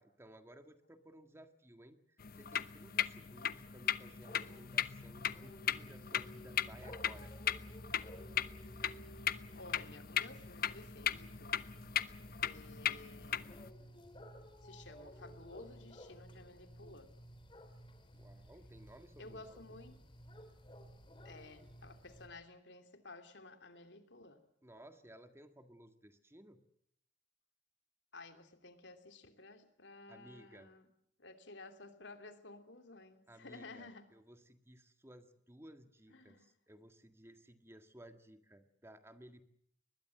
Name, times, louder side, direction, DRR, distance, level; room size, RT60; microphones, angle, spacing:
voice 1, 0.0-2.0 2.3-7.3 18.1-19.8 24.6-26.6 30.1-30.7 33.3-39.4, right 1 dB, 15° right, 8 dB, 1.8 m, -58 dB
sound 1, 2.2-13.7, left 9 dB, 55° left, 0.9 m, -38 dB
sound 2, 3.7-22.3, equal, 30° left, 3.3 m, -54 dB
voice 2, 9.5-11.6 12.4-14.0 14.6-17.1 19.2-20.0 21.2-24.4 28.1-30.9 31.2-34.1 36.1-36.5, left 2 dB, 90° left, 7 dB, 3.0 m, -54 dB
23.5 x 20.5 x 7.8 m, 0.69 s
head